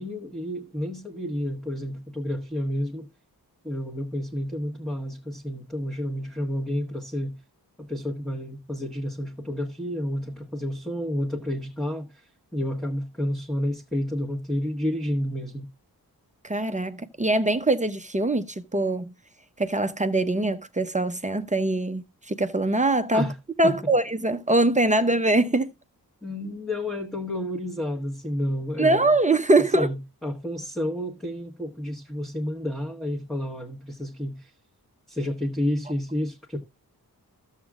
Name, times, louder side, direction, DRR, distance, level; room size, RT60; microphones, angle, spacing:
voice 1, 0.0-3.1 3.6-7.4 7.8-15.7 23.1-23.4 23.6-23.9 26.2-29.1 29.7-34.5 35.1-36.6, left 1 dB, ahead, 1.3 m, -30 dB
voice 2, 16.4-19.1 19.6-23.3 23.6-25.7 28.8-29.9, right 2 dB, 20° right, 0.7 m, -23 dB
14.0 x 7.3 x 2.4 m
wide cardioid pair, 120°, 37 cm